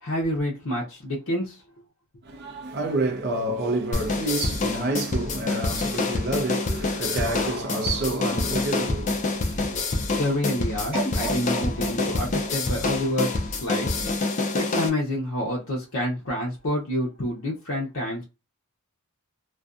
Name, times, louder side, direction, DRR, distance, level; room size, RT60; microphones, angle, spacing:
voice 1, 0.0-1.6 10.2-13.9 14.5-18.2, left 1 dB, 65° left, 0.7 m, -28 dB
voice 2, 2.2-9.8, right 2 dB, 45° right, 0.5 m, -29 dB
sound 1, 3.9-14.9, left 3 dB, 35° left, 0.4 m, -27 dB
sound 2, 6.5-8.8, equal, 80° right, 1.0 m, -38 dB
sound 3, 10.9-14.0 14.5-14.6, right 2 dB, 10° right, 0.9 m, -35 dB
2.5 x 2.2 x 2.4 m
head